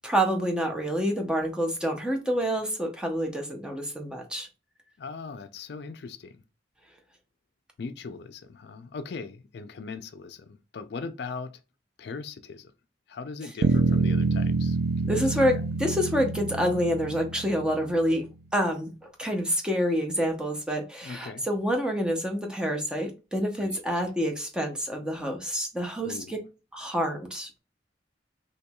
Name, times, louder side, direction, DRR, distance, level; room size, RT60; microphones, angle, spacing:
voice 1, 0.0-4.5 15.1-18.2 18.5-26.4 26.7-27.6, equal, 5° right, 0.7 m, -27 dB
voice 2, 5.0-6.4 7.8-11.6 12.0-12.7 13.1-14.8 15.0-15.7 21.0-21.5 23.6-23.7 26.0-26.3, left 4 dB, 60° left, 0.4 m, -39 dB
Bass guitar, 13.6-18.0, right 3 dB, 60° right, 0.4 m, -27 dB
4.4 x 2.9 x 2.2 m
head